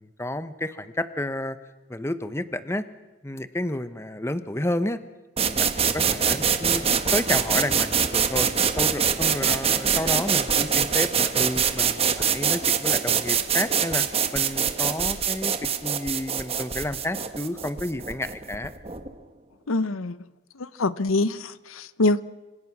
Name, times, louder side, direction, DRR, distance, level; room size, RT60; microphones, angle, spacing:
voice 1, 0.0-1.6 1.9-2.8 3.2-5.0 5.4-8.5 8.8-18.7, left 1 dB, 10° left, 12 dB, 0.9 m, -31 dB
sound 1, 5.4-19.1, right 7 dB, 30° right, 1.3 m, -24 dB
voice 2, 19.7-20.2 20.6-22.2, left 2 dB, 85° left, 16 dB, 0.8 m, -24 dB
26.0 x 26.0 x 6.1 m, 1.1 s
head